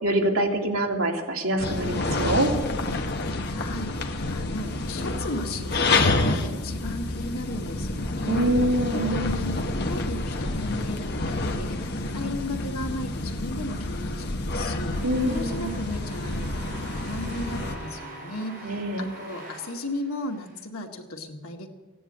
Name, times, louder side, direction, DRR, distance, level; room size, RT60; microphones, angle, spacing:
voice 1, 0.0-2.5 8.2-9.2 15.0-15.7 18.6-19.1, right 1 dB, 75° right, 0 dB, 2.7 m, -25 dB
sound 1, 1.6-17.8, left 2 dB, 50° left, 1.2 m, -28 dB
voice 2, 3.4-3.9 4.3-8.4 8.9-15.0 15.3-21.7, left 2 dB, 85° left, 2 dB, 2.2 m, -35 dB
sound 2, 14.8-20.6, right 1 dB, 50° right, 5.5 m, -42 dB
16.5 x 10.0 x 8.7 m, 1.2 s
head